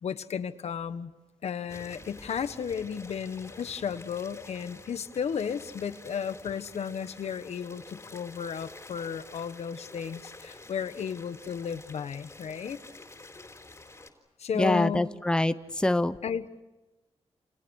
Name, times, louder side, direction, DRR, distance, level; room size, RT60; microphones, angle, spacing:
voice 1, 0.0-1.1 1.4-12.8 14.4-15.1 16.2-16.5, left 7 dB, 80° left, 10 dB, 1.4 m, -34 dB
sound 1, 1.7-14.1, left 2 dB, 25° left, 4.1 m, -49 dB
voice 2, 14.5-16.2, left 1 dB, 10° left, 11 dB, 0.8 m, -25 dB
29.5 x 28.5 x 6.5 m, 1.1 s
wide cardioid pair, 130°, 11 cm